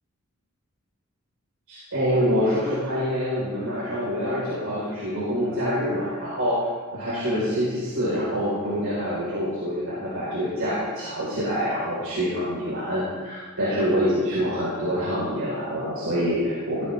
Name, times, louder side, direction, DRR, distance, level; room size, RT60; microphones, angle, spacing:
voice 1, 1.7-6.6 6.9-16.8, equal, 85° right, -8 dB, 4.7 m, -26 dB
16.5 x 13.5 x 3.6 m, 1.4 s
head